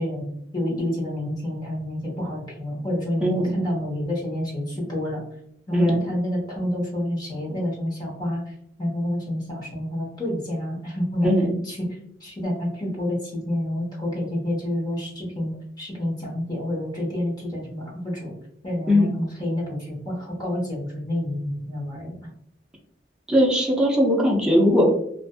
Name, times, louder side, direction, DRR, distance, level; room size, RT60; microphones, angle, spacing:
voice 1, 0.0-5.2 5.7-8.5 8.8-11.3 11.6-15.5 15.8-18.3 18.6-22.1, left 1 dB, 25° left, -4 dB, 1.0 m, -28 dB
voice 2, 3.2-3.5 5.7-6.0 11.2-11.6 18.9-19.1 23.3-24.9, equal, 5° right, -2 dB, 0.4 m, -19 dB
2.5 x 2.4 x 2.2 m, 0.72 s
head